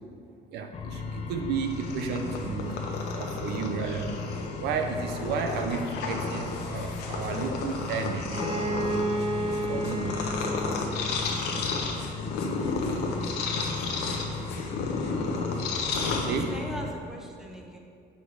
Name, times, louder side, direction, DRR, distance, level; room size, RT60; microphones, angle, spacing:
voice 1, 0.5-2.8 3.1-4.2 4.6-8.4 8.9-9.1 9.7-10.4 12.9-13.0 13.9-14.1 15.9-16.0 16.2-16.6, right 5 dB, 80° right, 5 dB, 0.6 m, -32 dB
sound 1, 0.7-16.9, left 3 dB, 40° left, 0.7 m, -37 dB
Purr, 1.6-16.8, left 4 dB, 75° left, 0.9 m, -33 dB
Bowed string instrument, 8.3-12.0, right 1 dB, 30° right, 1.0 m, -32 dB
voice 2, 15.9-17.8, right 1 dB, 5° right, 0 dB, 0.9 m, -41 dB
6.5 x 5.3 x 4.7 m, 2.4 s
cardioid pair, 110°, 17 cm